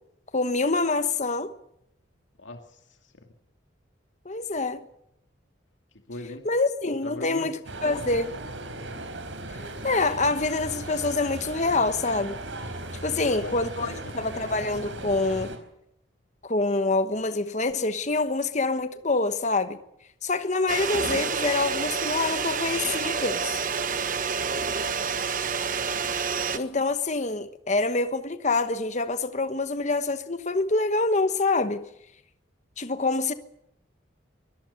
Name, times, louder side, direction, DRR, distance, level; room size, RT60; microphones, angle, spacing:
voice 1, 0.3-1.5 4.2-4.8 6.4-8.3 9.8-12.4 13.0-15.5 16.4-19.8 20.2-23.5 26.5-31.9 32.8-33.3, left 3 dB, 40° left, 1.2 m, -26 dB
voice 2, 2.4-3.2 6.1-6.5 7.0-7.5 13.1-14.1, left 2 dB, 85° left, 2.3 m, -40 dB
sound 1, 7.6-15.6, right 2 dB, 85° right, 4.3 m, -37 dB
whipping cream, 20.7-26.6, right 5 dB, 45° right, 1.2 m, -28 dB
24.0 x 18.0 x 6.7 m
head